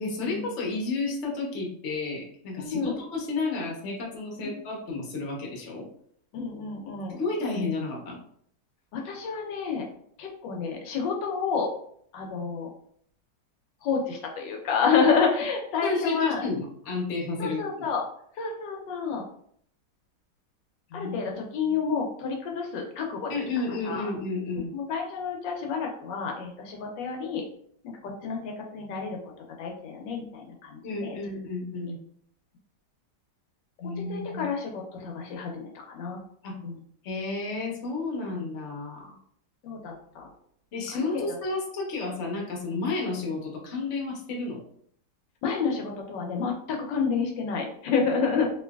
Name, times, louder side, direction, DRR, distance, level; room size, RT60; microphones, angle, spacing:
voice 1, 0.0-5.9 7.2-8.2 15.8-17.8 20.9-21.2 21.6-21.7 23.3-24.7 30.8-32.0 33.8-34.5 36.4-36.6 37.0-39.1 40.7-44.6, left 3 dB, 50° left, -1 dB, 0.9 m, -31 dB
voice 2, 2.6-2.9 4.4-4.6 6.3-7.2 8.9-9.9 10.2-11.7 12.1-12.7 13.8-16.4 17.4-18.0 18.3-19.2 20.9-23.3 23.7-24.1 24.6-27.4 27.8-29.2 29.6-31.1 33.8-36.2 36.6-36.8 39.6-40.3 40.9-41.4 45.4-48.5, left 5 dB, 80° left, 1 dB, 1.3 m, -29 dB
3.1 x 2.8 x 2.2 m, 0.65 s
omnidirectional pair, 2.0 m